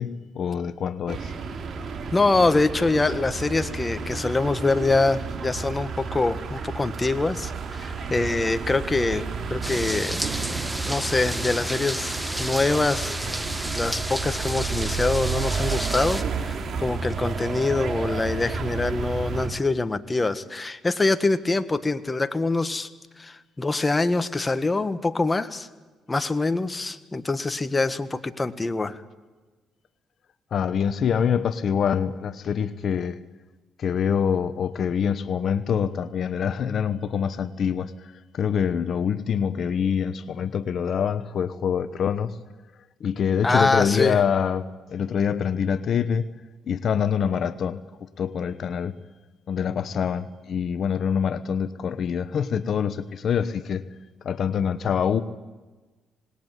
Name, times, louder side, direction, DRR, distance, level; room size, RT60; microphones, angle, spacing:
voice 1, 0.0-1.3 30.5-33.2 33.8-42.4 43.0-44.6 44.9-46.3 46.7-48.9 49.5-53.8 54.2-55.2, left 7 dB, 60° left, 13 dB, 1.1 m, -25 dB
sound 1, 1.1-19.5, right 5 dB, 55° right, 3.8 m, -31 dB
voice 2, 2.1-10.2 10.8-12.1 12.4-13.2 13.7-22.9 23.2-25.7 26.1-29.0 43.4-44.2, left 3 dB, 20° left, 11 dB, 1.6 m, -24 dB
sound 2, 9.6-16.2, right 1 dB, 5° right, 1.8 m, -32 dB
27.0 x 20.0 x 9.3 m, 1.3 s
cardioid pair, 90°, 0 cm